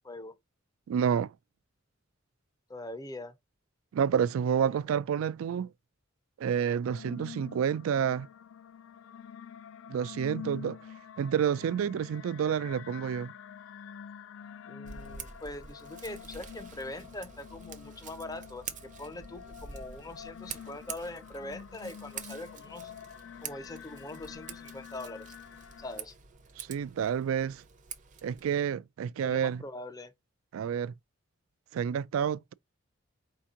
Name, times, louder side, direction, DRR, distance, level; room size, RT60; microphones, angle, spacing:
voice 1, 0.0-0.4 2.7-3.4 4.6-4.8 14.7-22.9 23.4-25.3 25.8-26.1 29.2-30.1, left 2 dB, 20° left, 0.5 m, -42 dB
voice 2, 0.9-1.3 3.9-5.7 6.4-8.3 9.9-10.8 11.2-13.3 26.6-27.6 28.2-29.6 30.5-30.9 31.7-32.5, right 8 dB, 80° right, 0.3 m, -29 dB
sound 1, 6.9-26.0, left 8 dB, 70° left, 0.4 m, -47 dB
Scissors, 14.8-28.5, right 7 dB, 40° right, 0.6 m, -47 dB
4.4 x 2.8 x 3.6 m
head